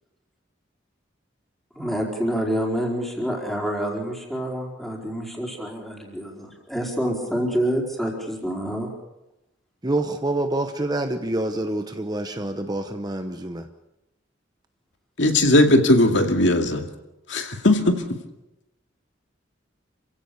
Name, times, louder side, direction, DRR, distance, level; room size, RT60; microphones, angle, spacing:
voice 1, 1.7-8.9, equal, ahead, -1 dB, 4.6 m, -27 dB
voice 2, 9.8-13.7, right 2 dB, 20° right, 7 dB, 0.9 m, -27 dB
voice 3, 15.2-16.8 17.3-18.0, left 1 dB, 70° left, 4 dB, 2.3 m, -18 dB
28.0 x 16.5 x 6.8 m, 0.93 s
head